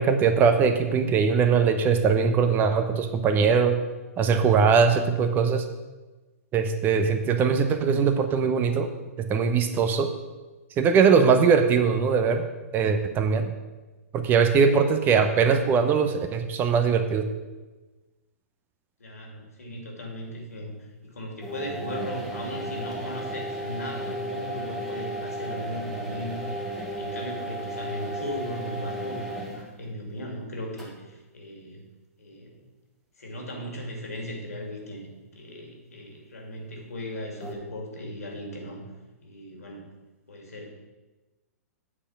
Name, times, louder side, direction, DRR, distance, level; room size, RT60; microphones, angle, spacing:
voice 1, 0.0-3.8 4.2-5.6 6.5-8.9 9.2-10.1 10.8-12.4 12.7-13.5 14.1-17.3, right 6 dB, 25° right, 7 dB, 0.8 m, -21 dB
voice 2, 19.0-26.5 27.0-31.8 32.2-32.6 33.2-38.8 39.2-39.8 40.3-40.7, left 1 dB, 75° left, 1 dB, 2.5 m, -37 dB
sound 1, 21.4-29.7 30.8-30.9 37.4-37.5, right 1 dB, ahead, 1.6 m, -34 dB
8.4 x 5.0 x 7.1 m, 1.2 s
figure-of-eight pair, 115°, 8 cm